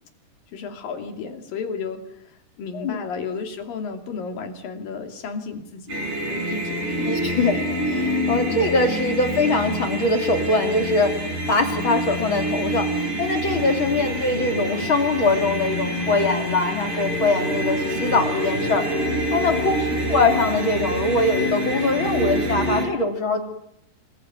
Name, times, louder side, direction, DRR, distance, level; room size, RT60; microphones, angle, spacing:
voice 1, 0.5-2.3 2.6-6.0 6.3-7.1 7.4-7.5 8.5-8.6 14.0-14.2 19.8-20.2, left 5 dB, 75° left, 6 dB, 4.4 m, -33 dB
sound 1, 5.9-22.9, equal, 65° right, 8.4 m, -26 dB
voice 2, 7.1-7.6 7.9-12.9 13.2-18.9 19.3-19.7 20.1-23.4, left 2 dB, 35° left, 5 dB, 3.5 m, -22 dB
26.5 x 21.0 x 9.4 m, 0.76 s
omnidirectional pair, 4.0 m